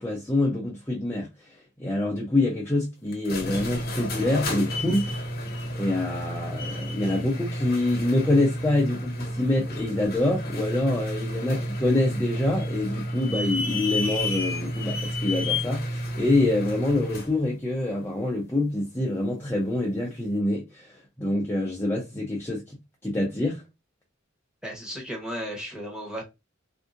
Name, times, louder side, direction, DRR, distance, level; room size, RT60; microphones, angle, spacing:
voice 1, 0.0-5.2 5.8-22.8 23.0-23.6, left 2 dB, 10° left, 0.6 m, -26 dB
sound 1, 3.1-17.4, left 1 dB, 50° left, 0.8 m, -31 dB
voice 2, 24.6-26.2, equal, 5° right, 1.1 m, -34 dB
3.5 x 2.7 x 2.5 m
head